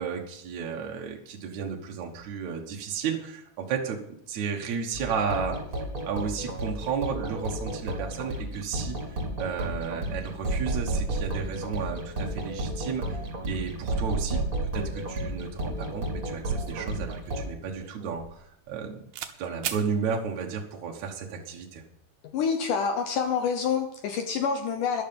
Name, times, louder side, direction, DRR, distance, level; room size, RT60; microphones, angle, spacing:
voice 1, 0.0-5.6 6.1-9.0 9.4-13.2 13.5-19.1 19.4-21.8, right 6 dB, 60° right, 1 dB, 2.2 m, -33 dB
sound 1, 4.9-17.5, right 1 dB, 25° right, 2.6 m, -32 dB
sound 2, 16.5-18.8 19.1-19.4 19.6-19.9, right 9 dB, 85° right, 3.0 m, -37 dB
voice 2, 22.2-25.0, left 6 dB, 70° left, 5 dB, 2.2 m, -27 dB
12.5 x 11.5 x 5.3 m, 0.77 s
omnidirectional pair, 4.4 m